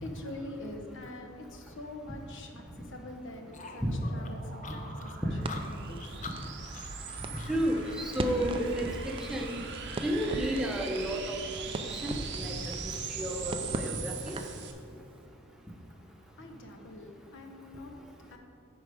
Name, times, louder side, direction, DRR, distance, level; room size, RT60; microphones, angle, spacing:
voice 1, 0.0-3.8 4.1-5.1 5.4-6.1 15.9-18.4, left 1 dB, 60° left, 3 dB, 0.9 m, -45 dB
sound 1, 3.2-14.7, right 7 dB, 55° right, 0.8 m, -43 dB
sound 2, 3.5-8.0, left 5 dB, 35° left, 0.6 m, -46 dB
Crackle, 5.4-14.6, right 2 dB, 25° right, 0.4 m, -40 dB
voice 2, 7.3-8.9 9.3-9.6 10.0-11.4 11.9-14.4, equal, 5° right, 0 dB, 0.8 m, -32 dB
9.5 x 4.9 x 4.9 m, 2.5 s
head